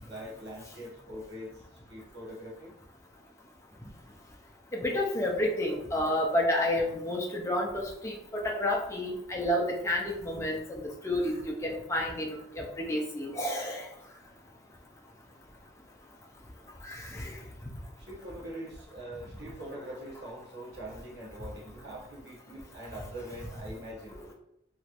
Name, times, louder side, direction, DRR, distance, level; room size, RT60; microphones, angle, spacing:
voice 1, 0.0-2.7 18.0-24.2, right 1 dB, 60° right, -4 dB, 1.1 m, -43 dB
voice 2, 4.7-13.9 16.8-17.4, left 1 dB, 15° left, -1 dB, 0.5 m, -30 dB
3.0 x 3.0 x 2.5 m, 0.76 s
head